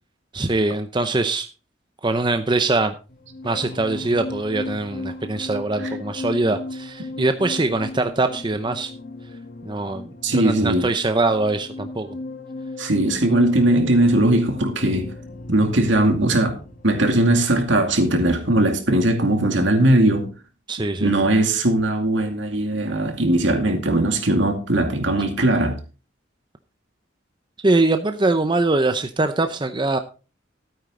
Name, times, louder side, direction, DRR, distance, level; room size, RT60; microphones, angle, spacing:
voice 1, 0.3-1.5 2.0-2.9 3.4-8.9 9.6-12.2 20.7-21.1 27.6-30.0, right 2 dB, 25° right, 0.6 m, -22 dB
sound 1, 3.1-19.7 20.0-20.3, left 2 dB, 45° left, 1.4 m, -37 dB
voice 2, 10.2-10.9 12.8-15.1 15.5-20.3 21.0-25.8, right 1 dB, 70° right, 2.3 m, -19 dB
12.5 x 9.1 x 3.7 m
head